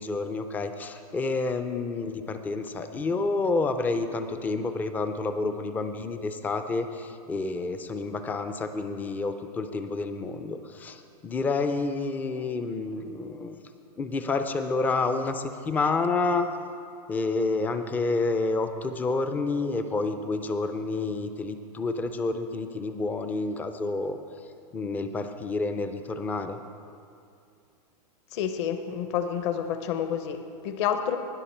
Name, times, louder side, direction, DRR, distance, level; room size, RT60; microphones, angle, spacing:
voice 1, 0.0-13.6 14.0-16.5 17.1-24.2 24.7-26.6, left 3 dB, 10° left, 8 dB, 0.3 m, -29 dB
voice 2, 28.3-31.2, left 8 dB, 40° left, 7 dB, 0.8 m, -29 dB
19.5 x 6.5 x 4.3 m, 2.4 s
hypercardioid pair, 145°, 21 cm